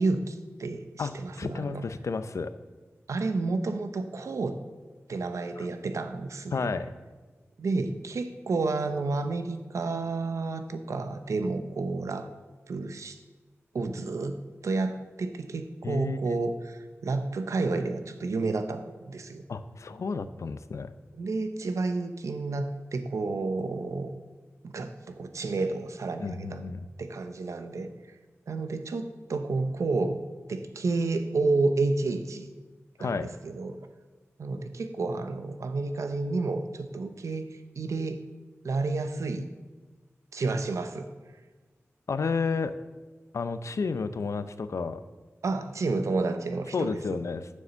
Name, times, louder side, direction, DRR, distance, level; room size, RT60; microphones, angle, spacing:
voice 1, 0.0-1.8 3.1-4.6 5.1-6.7 7.6-12.3 12.7-13.2 13.7-14.4 14.6-19.4 21.2-24.1 24.6-26.6 27.0-27.9 28.5-30.2 30.5-32.5 33.0-33.8 34.4-37.4 37.8-38.2 38.6-39.5 40.3-41.1 45.4-47.0, right 3 dB, 90° right, 9 dB, 0.7 m, -30 dB
voice 2, 1.0-2.5 5.6-5.7 6.5-6.9 15.8-16.4 19.5-20.9 26.2-26.9 33.0-33.3 42.1-42.7 43.3-45.0 46.7-47.4, left 4 dB, 80° left, 12 dB, 0.5 m, -31 dB
7.1 x 6.8 x 6.9 m, 1.3 s
wide cardioid pair, 60°, 5 cm